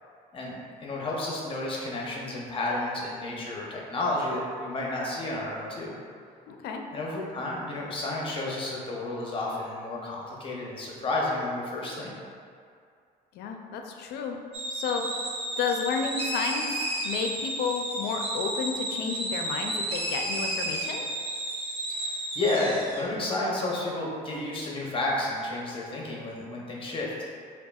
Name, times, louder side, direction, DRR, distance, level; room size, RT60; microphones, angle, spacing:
voice 1, 0.3-6.0 6.9-12.1 21.9-27.3, left 2 dB, 30° left, -3 dB, 0.8 m, -31 dB
voice 2, 6.5-6.8 13.3-14.4 14.7-15.0 15.6-16.7 17.0-21.1, left 6 dB, 75° left, 3 dB, 0.4 m, -31 dB
sound 1, 14.5-23.1, right 1 dB, 35° right, 0.6 m, -32 dB
5.3 x 2.3 x 2.3 m, 2.3 s
cardioid pair, 110°, 17 cm